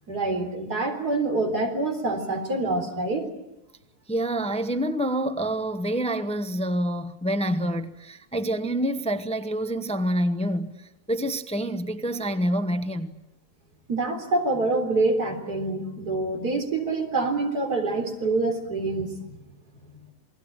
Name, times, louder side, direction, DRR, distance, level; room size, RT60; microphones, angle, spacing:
voice 1, 0.1-3.3 13.9-19.4, right 2 dB, 85° right, 4.3 m, -26 dB
voice 2, 4.1-13.1, right 1 dB, 5° left, 0.9 m, -27 dB
28.5 x 21.0 x 8.8 m
omnidirectional pair, 1.6 m